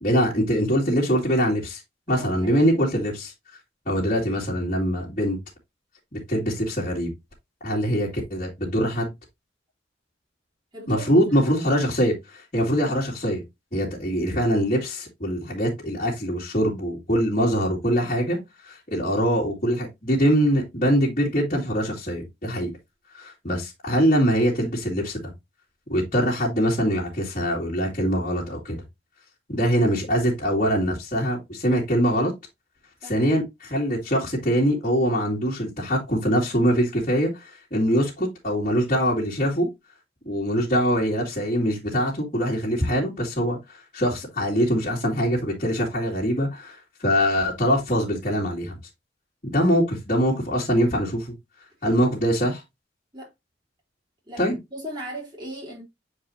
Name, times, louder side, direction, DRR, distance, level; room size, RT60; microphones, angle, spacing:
voice 1, 0.0-1.8 2.1-3.3 3.9-5.4 6.1-7.1 7.6-9.1 10.9-13.4 13.7-18.4 18.6-22.7 23.2-25.2 25.9-28.8 29.5-32.3 33.0-39.7 40.3-43.6 43.9-48.7 49.4-51.3 51.8-52.6 54.4-54.6, equal, 40° left, 2.3 m, -23 dB
voice 2, 2.1-2.8 10.7-11.5 33.0-33.2 49.6-49.7 53.1-53.3 54.3-54.4 54.7-55.8, right 1 dB, 25° right, 3.8 m, -37 dB
7.9 x 4.8 x 2.8 m
head